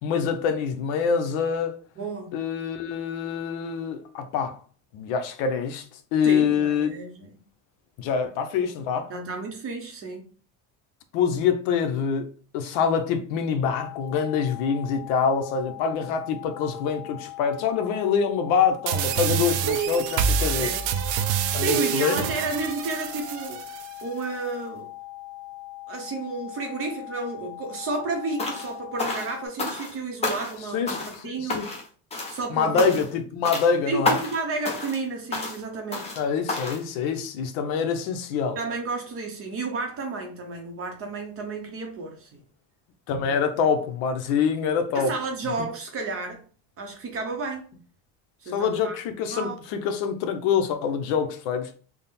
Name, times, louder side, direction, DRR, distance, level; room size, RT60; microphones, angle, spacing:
voice 1, 0.0-1.8 2.3-4.6 4.9-6.9 8.0-9.1 11.1-12.3 12.5-20.7 21.5-22.2 30.7-31.7 32.5-34.2 36.2-38.6 43.1-45.1 48.5-51.7, left 6 dB, 70° left, 0.7 m, -25 dB
voice 2, 2.0-2.4 6.2-7.3 9.1-10.3 20.4-20.9 21.6-23.6 24.0-24.9 25.9-31.6 32.3-33.0 33.9-36.1 38.6-42.4 43.3-43.4 44.9-46.4 46.8-47.7 48.4-49.0 49.3-49.6, right 3 dB, 30° right, 0.6 m, -32 dB
sound 1, 13.8-29.5, left 17 dB, 50° left, 1.2 m, -41 dB
sound 2, 18.9-23.9, right 8 dB, 75° right, 0.6 m, -26 dB
sound 3, 28.4-28.7 29.0-29.9 30.2-30.6 30.9-31.2 31.5-31.9 32.1-32.4 32.8-33.2 33.4-33.7 34.0-34.4 34.6-35.0 35.3-35.6 35.9-36.2 36.5-36.8, left 3 dB, 15° left, 0.4 m, -29 dB
3.7 x 2.0 x 4.0 m
cardioid pair, 165°, 49 cm